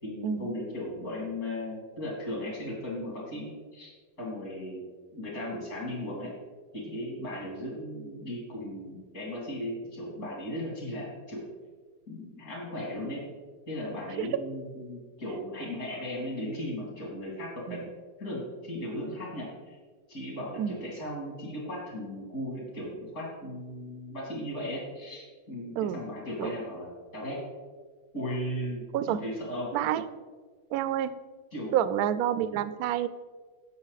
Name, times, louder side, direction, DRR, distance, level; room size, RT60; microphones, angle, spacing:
voice 1, 0.0-3.9 4.2-4.8 5.1-6.3 6.7-11.4 12.1-13.2 13.7-17.8 18.2-19.8 20.1-27.4 28.1-29.7 31.5-31.8, left 1 dB, 50° left, -4 dB, 3.2 m, -36 dB
voice 2, 28.9-29.2 29.7-30.1 30.7-31.2 31.7-33.1, right 10 dB, 70° right, 14 dB, 0.9 m, -28 dB
15.5 x 5.8 x 4.0 m, 1.5 s
omnidirectional pair, 1.9 m